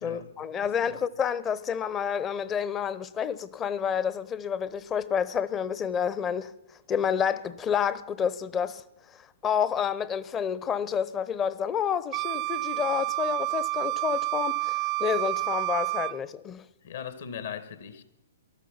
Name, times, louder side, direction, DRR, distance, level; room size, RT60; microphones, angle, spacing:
voice 1, 0.0-6.5 6.9-8.8 9.4-16.6, left 8 dB, 20° left, 0.8 m, -29 dB
voice 2, 0.6-1.0 16.8-18.0, left 8 dB, 60° left, 2.0 m, -39 dB
Wind instrument woodwind instrument, 12.1-16.2, right 23 dB, 35° right, 0.5 m, -29 dB
19.0 x 13.5 x 5.7 m
figure-of-eight pair, 120°, 0 cm